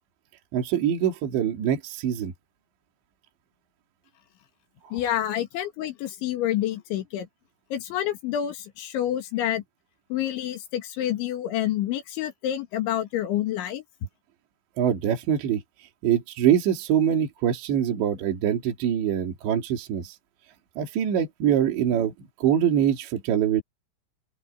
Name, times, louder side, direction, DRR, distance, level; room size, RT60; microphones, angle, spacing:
voice 1, 0.5-2.3 4.8-5.0 14.8-15.6 16.0-20.2 20.8-22.1 22.4-23.6, right 9 dB, 65° right, 4.8 m, -24 dB
voice 2, 4.9-7.3 7.7-9.6 10.1-13.8, left 11 dB, 70° left, 4.3 m, -28 dB
open air
omnidirectional pair, 5.7 m